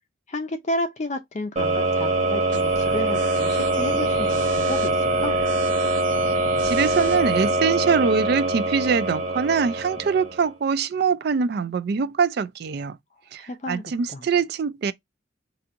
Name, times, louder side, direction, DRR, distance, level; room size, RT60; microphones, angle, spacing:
voice 1, 0.3-5.4 13.4-14.3, left 1 dB, 40° left, 0.5 m, -32 dB
sound 1, 1.6-10.5, right 2 dB, 35° right, 0.9 m, -23 dB
sound 2, 2.5-7.5, right 4 dB, 85° right, 0.7 m, -38 dB
voice 2, 6.6-13.0 13.3-13.4 13.7-14.9, right 5 dB, 55° right, 0.3 m, -23 dB
4.1 x 2.6 x 2.5 m
head